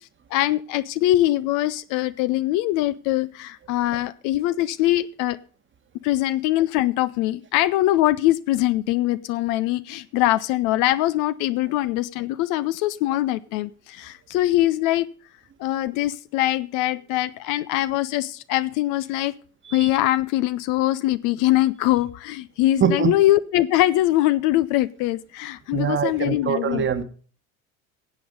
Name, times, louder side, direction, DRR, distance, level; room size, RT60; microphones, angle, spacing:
voice 1, 0.3-5.4 6.0-15.1 15.6-19.3 19.7-26.9, left 15 dB, 45° left, 0.7 m, -22 dB
voice 2, 22.8-23.1 25.7-27.0, right 8 dB, 25° right, 1.4 m, -23 dB
16.5 x 8.5 x 5.3 m
figure-of-eight pair, 65°, 42 cm